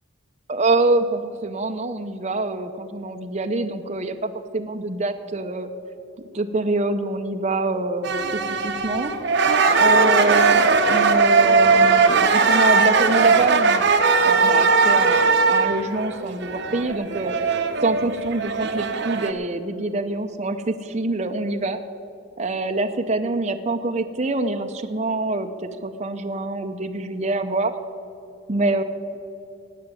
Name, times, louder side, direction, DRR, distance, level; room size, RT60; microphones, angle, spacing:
voice 1, 0.5-5.7 6.3-9.1 9.8-13.9 14.2-17.4 17.8-21.8 22.4-27.7 28.5-28.8, right 2 dB, 35° right, 5 dB, 0.6 m, -25 dB
sound 1, 8.0-19.3, right 4 dB, 55° right, 0.9 m, -19 dB
17.5 x 6.0 x 9.6 m, 2.7 s
head